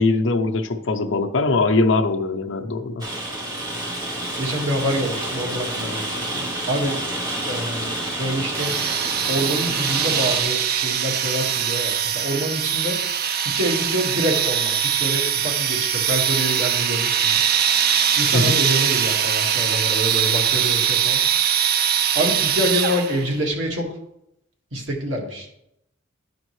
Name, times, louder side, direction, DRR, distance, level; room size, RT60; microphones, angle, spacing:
voice 1, 0.0-3.1 18.3-18.6, left 3 dB, 70° left, 7 dB, 0.7 m, -21 dB
Rain, 3.0-10.4, right 1 dB, 20° right, 1.4 m, -29 dB
voice 2, 4.4-7.0 7.5-8.8 9.3-13.0 13.4-17.4 18.2-21.2 22.1-23.9 24.7-25.5, equal, 75° right, 0 dB, 1.8 m, -26 dB
Straight die grinder - Run, 8.5-23.3, right 8 dB, 50° right, 0.5 m, -22 dB
11.5 x 5.1 x 3.2 m, 0.79 s
head